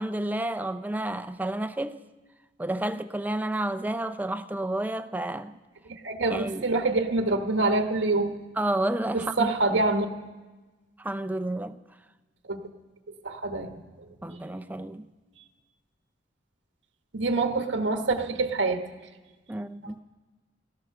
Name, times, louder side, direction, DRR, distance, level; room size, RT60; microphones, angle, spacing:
voice 1, 0.0-2.0 2.6-5.5 6.3-6.7 8.6-9.8 11.0-11.8 14.2-15.1 19.5-20.0, right 1 dB, 10° right, 0.4 m, -30 dB
voice 2, 5.9-8.4 9.1-10.1 12.5-12.6 13.2-13.8 17.1-18.8, right 3 dB, 90° right, 1.3 m, -26 dB
17.0 x 12.5 x 6.7 m
head